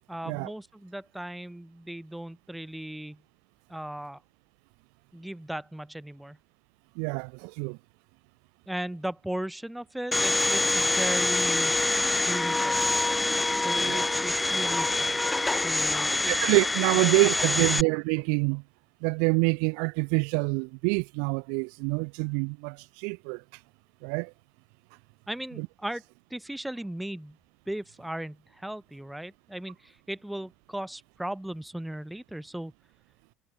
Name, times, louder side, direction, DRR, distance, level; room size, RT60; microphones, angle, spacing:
voice 1, 0.1-3.2 3.7-4.2 5.1-6.4 8.7-11.7 12.3-12.8 13.6-15.2 15.6-16.4 17.4-17.8 25.3-26.0 26.3-27.4 27.7-32.7, right 1 dB, 5° right, 5.4 m, -37 dB
voice 2, 7.0-7.8 13.9-14.0 16.3-18.6 19.0-23.4 24.0-24.3 25.6-25.7, right 40 dB or more, 75° right, 2.5 m, -26 dB
Domestic sounds home sounds, 10.1-17.8, left 2 dB, 15° left, 2.1 m, -25 dB
hypercardioid pair, 60°, 0 cm